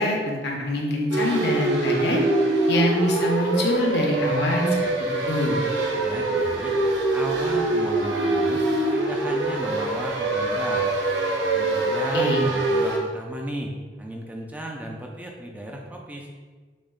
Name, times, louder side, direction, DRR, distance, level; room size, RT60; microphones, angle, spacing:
voice 1, 0.0-2.2 2.7-5.6 12.1-12.5, left 1 dB, 70° left, -1 dB, 0.7 m, -24 dB
sound 1, 1.1-13.0, right 2 dB, 90° right, 0.6 m, -24 dB
voice 2, 6.0-6.7 7.1-10.9 11.4-13.7 14.0-16.3, right 1 dB, 10° right, 0 dB, 0.3 m, -35 dB
6.2 x 2.1 x 2.4 m, 1.4 s
head